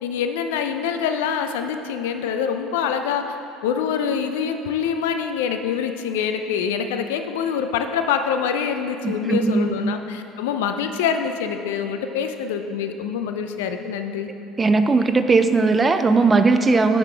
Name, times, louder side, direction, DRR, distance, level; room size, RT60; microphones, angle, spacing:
voice 1, 0.0-3.4 3.6-14.3, left 7 dB, 85° left, 7 dB, 0.4 m, -25 dB
voice 2, 9.0-9.9 14.6-17.0, right 3 dB, 25° right, 9 dB, 0.4 m, -18 dB
9.5 x 5.1 x 3.4 m, 2.8 s
supercardioid pair, 80°, 0 cm